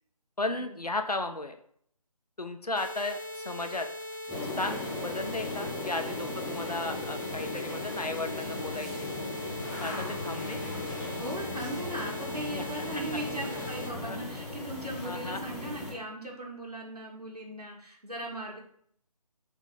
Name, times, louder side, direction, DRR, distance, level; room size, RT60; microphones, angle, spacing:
voice 1, 0.4-1.5 2.4-3.9 4.6-9.1 9.8-10.6 12.5-12.7 12.9-13.0 14.0-14.2 15.0-15.4, left 2 dB, 75° left, 6 dB, 1.0 m, -35 dB
sound 1, 2.7-13.9, left 1 dB, 30° left, 0.8 m, -40 dB
sound 2, 4.3-15.9, left 2 dB, ahead, 0.9 m, -37 dB
voice 2, 9.9-10.2 11.2-18.6, right 1 dB, 85° right, -2 dB, 2.2 m, -38 dB
6.5 x 3.7 x 5.1 m, 0.65 s
figure-of-eight pair, 155°, 20 cm